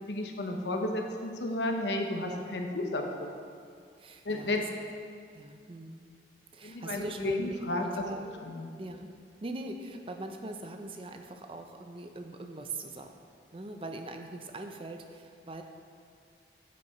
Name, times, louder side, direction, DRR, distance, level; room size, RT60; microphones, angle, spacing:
voice 1, 0.1-3.3 4.2-4.6 6.6-7.9 8.5-8.7, left 2 dB, 80° left, 3 dB, 0.8 m, -32 dB
voice 2, 4.0-4.5 5.3-6.1 6.5-8.3 8.8-9.1 9.4-13.1 13.5-15.6, right 2 dB, 30° right, 5 dB, 0.5 m, -41 dB
9.4 x 5.4 x 4.4 m, 2.2 s
head